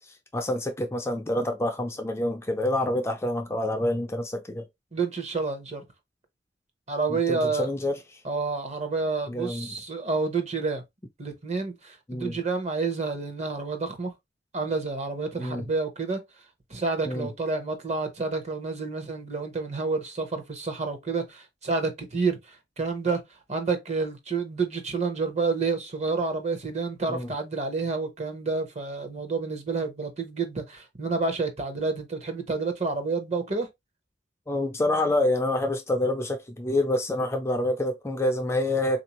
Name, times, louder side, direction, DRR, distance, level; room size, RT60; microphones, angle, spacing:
voice 1, 0.3-4.6 7.3-8.0 9.3-9.7 12.1-12.3 15.4-15.6 17.0-17.3 27.1-27.3 34.5-39.0, left 1 dB, 15° left, 0.4 m, -27 dB
voice 2, 4.9-5.8 6.9-7.7 8.2-10.8 11.2-14.1 14.5-16.2 16.7-23.2 23.5-33.7, right 4 dB, 35° right, 0.8 m, -29 dB
3.7 x 2.6 x 2.9 m
head